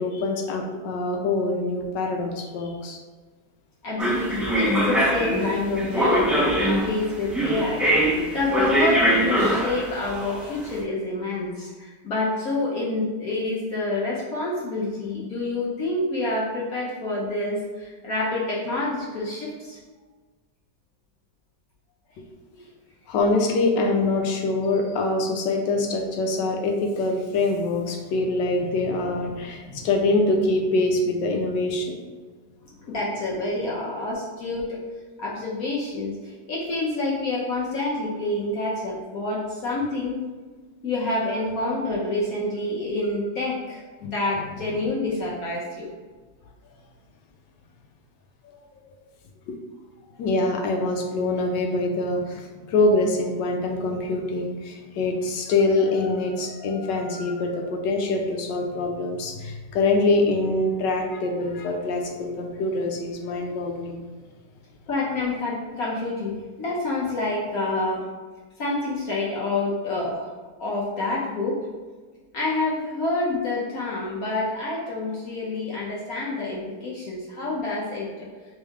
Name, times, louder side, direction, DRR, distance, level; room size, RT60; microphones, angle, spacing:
voice 1, 0.0-3.0 23.1-32.0 49.5-49.6 50.2-64.0, left 2 dB, 80° left, 2 dB, 1.3 m, -24 dB
voice 2, 3.8-7.8 8.3-19.8 22.5-22.7 32.6-34.8 35.2-40.2 40.8-45.9 48.4-48.5 64.9-66.3 66.6-68.1 68.6-70.3 70.6-71.6 72.3-78.3, left 2 dB, 60° left, -5 dB, 1.1 m, -28 dB
Subway L train service announcement, 4.0-10.7, equal, ahead, 0.3 m, -22 dB
3.5 x 3.3 x 3.5 m, 1.4 s
omnidirectional pair, 1.9 m